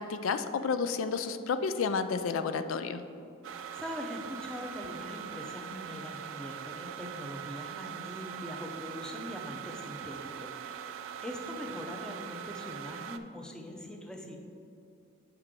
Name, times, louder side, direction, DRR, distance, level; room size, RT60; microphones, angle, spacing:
voice 1, 0.0-3.0, left 5 dB, 85° left, 10 dB, 0.4 m, -31 dB
sound 1, 3.4-13.2, right 9 dB, 80° right, 0.4 m, -42 dB
voice 2, 3.7-14.4, left 1 dB, 5° left, 1 dB, 0.6 m, -42 dB
8.1 x 5.8 x 3.7 m, 2.6 s
head